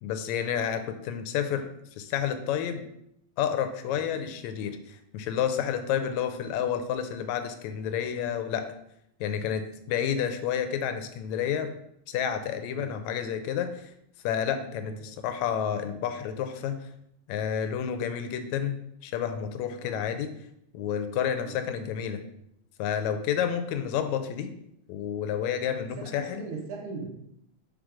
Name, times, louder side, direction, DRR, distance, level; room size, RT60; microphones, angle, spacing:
voice 1, 0.0-1.7 2.0-2.8 3.4-8.7 9.2-11.7 12.1-13.9 14.2-16.9 17.3-18.8 19.0-20.3 20.7-22.2 22.8-24.5 24.9-26.4, left 8 dB, 80° left, 8 dB, 1.8 m, -30 dB
voice 2, 25.8-27.1, right 4 dB, 60° right, 0 dB, 1.7 m, -40 dB
5.1 x 3.9 x 4.7 m, 0.75 s
omnidirectional pair, 3.4 m